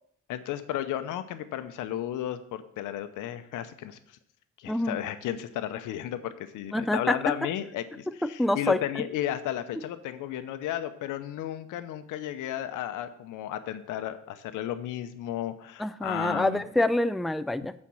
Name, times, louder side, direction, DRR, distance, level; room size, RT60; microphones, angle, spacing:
voice 1, 0.3-4.2 4.6-16.7, left 11 dB, 90° left, 11 dB, 0.8 m, -34 dB
voice 2, 4.7-5.0 6.7-7.2 8.1-9.0 15.8-17.7, left 1 dB, ahead, 13 dB, 0.3 m, -27 dB
8.7 x 4.4 x 7.1 m, 0.70 s
cardioid pair, 90°, 30 cm